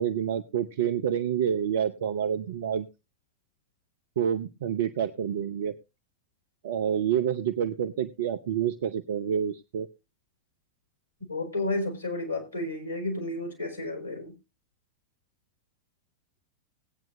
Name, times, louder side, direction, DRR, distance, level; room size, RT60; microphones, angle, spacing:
voice 1, 0.0-2.9 4.2-5.8 6.6-9.9, right 8 dB, 60° right, 8 dB, 0.7 m, -28 dB
voice 2, 11.3-14.3, left 2 dB, 90° right, 1 dB, 4.4 m, -32 dB
19.0 x 9.0 x 2.6 m, 0.26 s
figure-of-eight pair, 90°, 0 cm